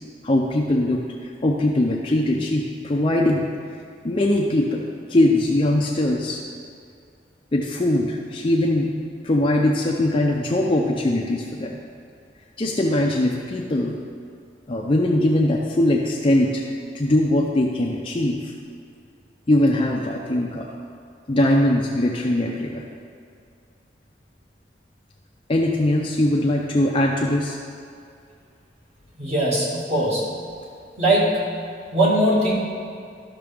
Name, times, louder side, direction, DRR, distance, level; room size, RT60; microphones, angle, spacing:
voice 1, 0.2-3.4 4.0-4.8 5.1-6.4 7.5-8.9 9.2-11.8 12.6-14.0 14.7-16.6 16.9-18.5 19.5-20.7 21.3-22.8 25.5-27.6, left 1 dB, 30° left, -1 dB, 0.6 m, -21 dB
voice 2, 29.2-30.3 31.0-31.5 31.9-32.6, right 1 dB, 35° right, -6 dB, 2.0 m, -20 dB
12.5 x 5.9 x 3.5 m, 2.4 s
head